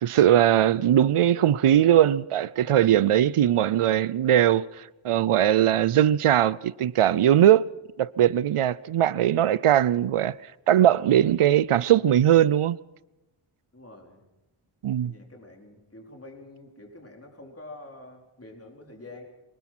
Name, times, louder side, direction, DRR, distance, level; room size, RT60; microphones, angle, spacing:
voice 1, 0.0-7.7 8.0-10.3 10.7-12.8 14.8-15.1, right 11 dB, 85° right, 0.7 m, -20 dB
voice 2, 13.7-14.3 15.0-19.2, left 2 dB, 30° left, 4.4 m, -46 dB
25.5 x 19.0 x 6.1 m
wide cardioid pair, 75°, 50 cm